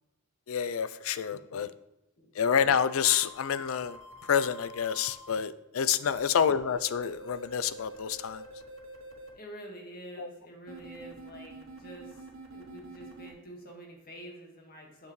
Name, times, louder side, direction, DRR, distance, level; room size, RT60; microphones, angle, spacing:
voice 1, 0.5-1.7 2.4-4.0 4.3-8.4 10.2-10.3, left 8 dB, 75° left, 15 dB, 0.4 m, -28 dB
sound 1, 2.8-5.3 6.7-9.3 10.7-13.3, right 1 dB, 70° right, 1.4 m, -47 dB
voice 2, 9.4-12.1 12.5-15.1, right 1 dB, 45° left, 1 dB, 1.8 m, -47 dB
8.3 x 6.7 x 3.1 m, 0.96 s
head